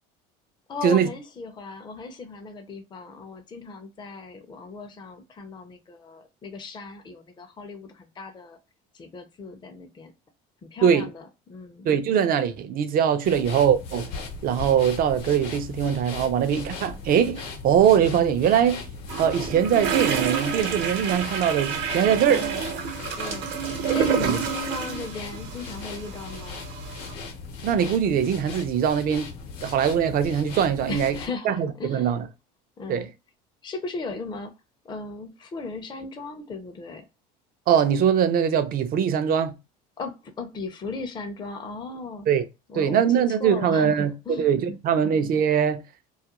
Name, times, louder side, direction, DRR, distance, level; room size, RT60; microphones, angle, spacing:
voice 1, 0.7-8.6 8.9-10.1 10.6-11.9 22.2-22.6 23.2-23.5 23.9-26.6 30.9-32.2 32.8-33.1 33.6-34.5 34.8-37.0 40.0-42.3 42.7-44.8, left 3 dB, 20° left, 0.5 m, -37 dB
voice 2, 11.8-14.1 14.4-18.8 19.2-22.4 24.2-24.4 27.6-29.3 29.6-31.2 31.4-32.3 32.9-33.1 37.7-39.5 42.3-42.4 42.7-45.8, right 8 dB, 50° right, 0.5 m, -22 dB
sound 1, 13.2-31.3, left 4 dB, 75° left, 0.8 m, -38 dB
sound 2, 19.1-27.1, right 7 dB, 65° right, 0.9 m, -29 dB
2.4 x 2.2 x 2.8 m
supercardioid pair, 95°, 20 cm